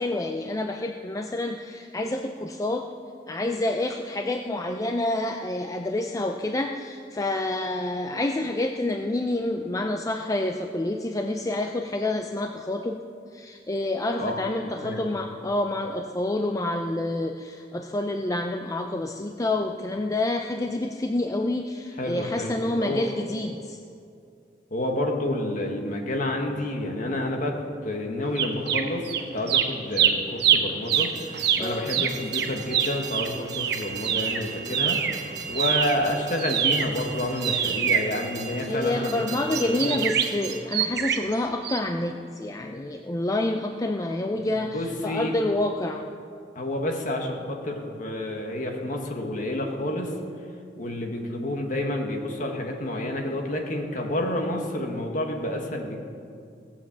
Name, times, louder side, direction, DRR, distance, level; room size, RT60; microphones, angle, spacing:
voice 1, 0.0-2.9 3.3-13.0 13.3-23.8 31.6-32.1 38.7-46.0, left 2 dB, 20° left, 4 dB, 0.5 m, -28 dB
voice 2, 14.2-15.1 22.0-23.0 24.7-27.6 27.8-29.1 29.3-31.1 31.6-35.0 35.5-40.1 44.3-45.3 46.5-50.1 50.8-56.0, left 1 dB, 45° left, 2 dB, 1.7 m, -29 dB
sound 1, 28.4-29.2 29.5-35.2 35.5-38.8 39.5-41.3 41.6-41.8, right 8 dB, 65° right, 0.9 m, -25 dB
Train, 30.8-40.6, right 6 dB, 40° right, 1.7 m, -39 dB
17.0 x 7.4 x 7.4 m, 2.4 s
head